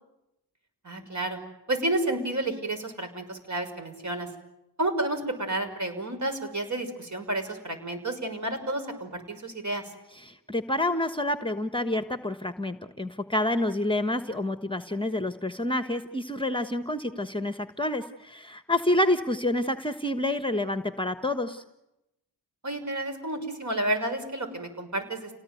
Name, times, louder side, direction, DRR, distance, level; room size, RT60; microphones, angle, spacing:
voice 1, 0.8-1.4 1.7-4.3 4.8-9.8 22.6-25.3, right 1 dB, 45° right, 7 dB, 6.1 m, -30 dB
voice 2, 10.1-21.6, left 1 dB, 10° left, 10 dB, 1.3 m, -28 dB
29.5 x 18.5 x 9.2 m, 0.90 s
cardioid pair, 70°, 41 cm